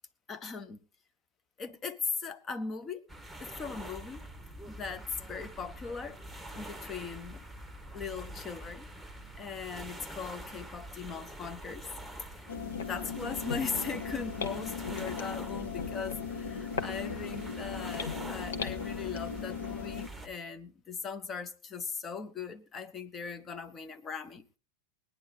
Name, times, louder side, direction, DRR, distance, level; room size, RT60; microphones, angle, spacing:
voice 1, 0.3-0.8 1.6-3.0 3.4-4.2 4.7-6.2 6.5-7.4 7.9-8.9 9.4-11.9 12.2-12.5 12.8-24.6, left 5 dB, 25° left, 1.1 m, -39 dB
sound 1, 3.1-20.3, right 1 dB, ahead, 1.7 m, -45 dB
sound 2, 12.5-20.1, left 6 dB, 65° left, 1.2 m, -37 dB
19.5 x 10.0 x 4.1 m
figure-of-eight pair, 90°, 0 cm